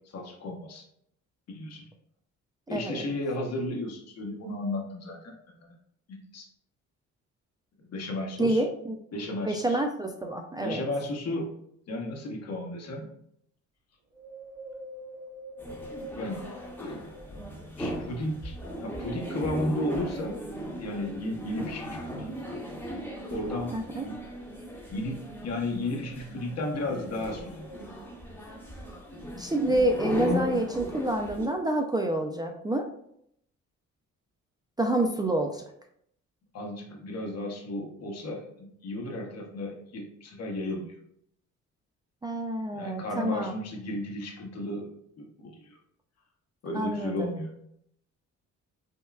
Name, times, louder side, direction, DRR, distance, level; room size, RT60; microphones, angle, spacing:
voice 1, 0.1-0.8 1.5-1.9 2.7-5.3 5.6-5.7 6.1-6.4 7.8-8.6 9.1-9.8 10.6-11.5 11.9-13.1 16.2-16.4 16.8-17.1 17.8-18.5 18.8-22.6 23.3-24.2 24.9-27.7 36.5-40.9 42.7-44.9 45.2-45.8 46.6-47.5, left 1 dB, 55° left, 0 dB, 1.0 m, -34 dB
voice 2, 2.7-3.0 8.4-9.0 9.4-10.8 23.7-24.1 29.4-32.9 34.8-35.6 42.2-43.5 46.7-47.3, right 1 dB, 15° right, 3 dB, 0.3 m, -28 dB
Wind, 14.1-17.7 18.2-19.5 20.0-20.1, right 1 dB, 65° right, 1.2 m, -45 dB
sound 1, 15.6-31.5, left 1 dB, 5° left, 1.0 m, -37 dB
5.4 x 2.2 x 2.3 m, 0.70 s
cardioid pair, 90°, 30 cm